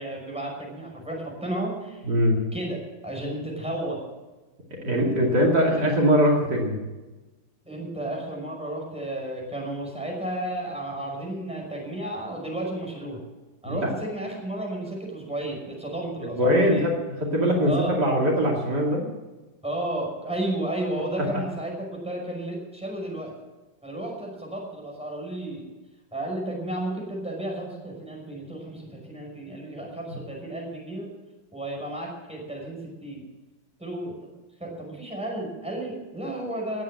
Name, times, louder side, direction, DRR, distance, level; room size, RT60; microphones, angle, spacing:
voice 1, 0.0-2.1 2.5-2.8 3.0-4.0 7.7-13.2 13.6-16.9 17.6-18.0 19.6-23.3 23.8-25.7 26.1-31.1 31.5-33.2 33.8-34.1 34.6-36.8, right 1 dB, 5° right, -1 dB, 5.7 m, -32 dB
voice 2, 2.0-2.4 4.8-6.8 13.6-13.9 16.2-16.9 17.3-17.7 18.0-19.0, equal, 60° right, -2 dB, 3.2 m, -21 dB
19.0 x 9.3 x 7.7 m, 1.2 s
omnidirectional pair, 2.1 m